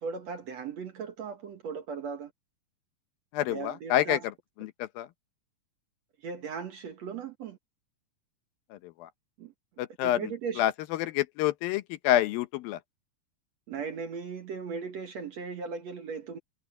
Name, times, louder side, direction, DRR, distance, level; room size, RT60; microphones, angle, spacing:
voice 1, 0.0-2.3 3.5-4.2 6.2-7.6 9.4-9.5 10.0-10.6 13.7-16.4, right 5 dB, 55° right, 2.1 m, -37 dB
voice 2, 3.3-4.2 4.6-5.1 8.7-9.1 9.8-12.8, left 13 dB, 75° left, 2.6 m, -28 dB
omnidirectional pair, 4.3 m